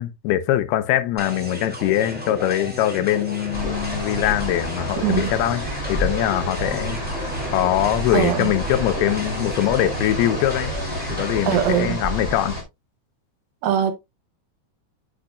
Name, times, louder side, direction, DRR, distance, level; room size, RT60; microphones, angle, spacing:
voice 1, 0.0-5.6 5.9-7.0 7.5-10.7 11.1-12.6, left 13 dB, 85° left, 2.7 m, -22 dB
sound 1, 1.2-11.8, equal, 10° right, 0.5 m, -34 dB
sound 2, 3.5-12.6, equal, 25° left, 0.7 m, -29 dB
voice 2, 5.0-5.3 8.1-8.5 11.5-12.0 13.6-14.0, right 10 dB, 75° right, 2.5 m, -21 dB
8.1 x 6.0 x 2.2 m
omnidirectional pair, 4.5 m